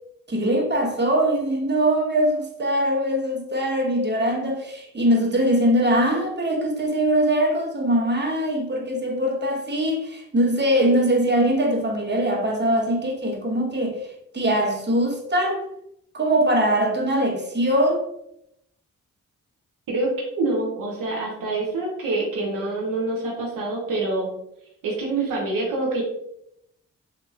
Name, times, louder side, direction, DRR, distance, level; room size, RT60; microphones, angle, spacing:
voice 1, 0.3-14.1 14.3-15.6 16.1-18.0, right 1 dB, 35° right, 1.0 m, -22 dB
voice 2, 19.9-24.3 24.8-26.0, right 2 dB, 80° right, 0.8 m, -26 dB
3.7 x 2.9 x 2.3 m
supercardioid pair, 40°, 32 cm